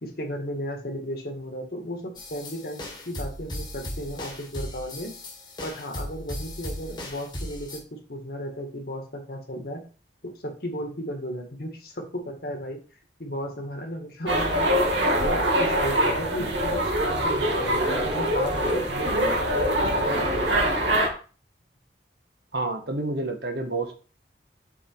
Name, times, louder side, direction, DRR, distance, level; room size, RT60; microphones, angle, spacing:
voice 1, 0.0-5.1 5.6-9.8 10.2-12.8 13.2-14.9 15.2-20.7, equal, 55° left, 3 dB, 1.8 m, -35 dB
sound 1, 2.2-7.8, left 1 dB, 25° left, 1.5 m, -37 dB
sound 2, 14.3-21.1, right 1 dB, 85° right, 2.0 m, -24 dB
voice 2, 22.5-23.9, right 2 dB, 65° right, 4 dB, 1.3 m, -29 dB
7.3 x 4.4 x 4.5 m, 0.38 s
head